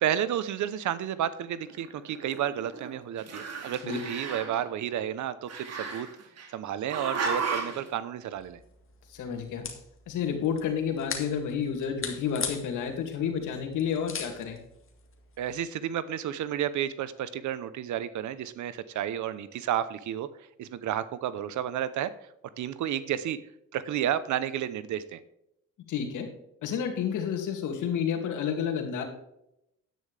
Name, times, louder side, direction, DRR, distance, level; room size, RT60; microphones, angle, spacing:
voice 1, 0.0-6.1 6.5-8.6 15.4-20.3 20.6-22.1 22.6-23.4 23.7-25.2, right 10 dB, 75° right, 15 dB, 0.8 m, -31 dB
Growling, 1.7-2.9 3.2-4.6 5.5-6.5 6.9-7.8, right 4 dB, 55° right, 2.4 m, -34 dB
sound 1, 8.3-15.6, left 6 dB, 45° left, 2.1 m, -41 dB
voice 2, 9.1-9.7 10.1-14.6 25.9-26.3 26.6-29.0, left 7 dB, 85° left, 4 dB, 2.4 m, -30 dB
10.5 x 9.3 x 3.4 m, 0.80 s
cardioid pair, 90°, 30 cm